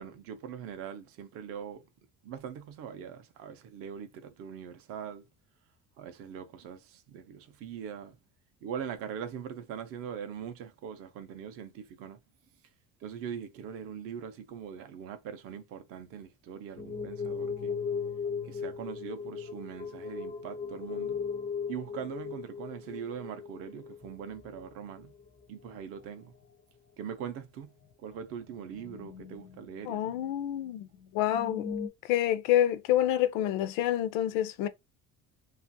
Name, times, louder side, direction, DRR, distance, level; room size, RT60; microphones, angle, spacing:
voice 1, 0.0-1.8 2.2-5.3 6.0-8.1 8.6-12.2 13.0-17.8 18.4-21.2 21.7-25.1 25.5-26.3 27.0-27.7 28.0-30.2, right 8 dB, 45° right, 0.5 m, -41 dB
sound 1, 16.8-25.3 25.6-26.1 26.5-26.6 27.1-27.2 28.2-30.3 30.6-30.7 31.0-31.9, left 6 dB, 25° left, 0.4 m, -38 dB
voice 2, 29.9-30.9 31.1-31.7 32.1-34.7, left 12 dB, 80° left, 0.5 m, -27 dB
2.8 x 2.4 x 2.6 m
cardioid pair, 165°, 33 cm